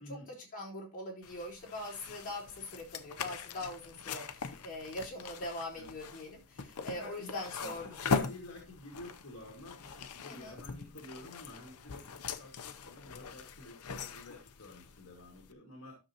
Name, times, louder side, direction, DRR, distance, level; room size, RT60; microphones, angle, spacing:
voice 1, 0.0-8.0 10.3-10.6, left 1 dB, 40° left, -2 dB, 4.2 m, -42 dB
sound 1, 1.2-15.5, left 5 dB, 90° left, 0.8 m, -41 dB
voice 2, 7.0-16.1, left 2 dB, 60° left, 0 dB, 2.2 m, -50 dB
13.0 x 6.7 x 2.9 m, 0.26 s
head